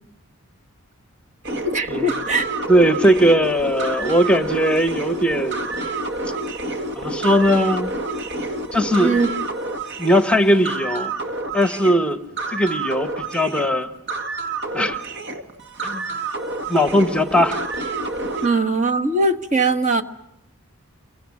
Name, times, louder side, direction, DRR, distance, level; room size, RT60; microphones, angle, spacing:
sound 1, 1.4-18.5, right 2 dB, 50° right, 2.2 m, -28 dB
voice 1, 1.5-2.5 9.0-9.3 18.4-20.0, right 2 dB, 30° right, 5 dB, 1.5 m, -20 dB
voice 2, 2.7-5.7 6.9-7.9 8.7-9.2 10.0-11.1 11.5-12.2 12.5-13.9 14.7-15.0 15.8-16.0 16.7-17.6, equal, 5° left, 9 dB, 1.2 m, -19 dB
29.0 x 23.0 x 7.3 m, 0.82 s
head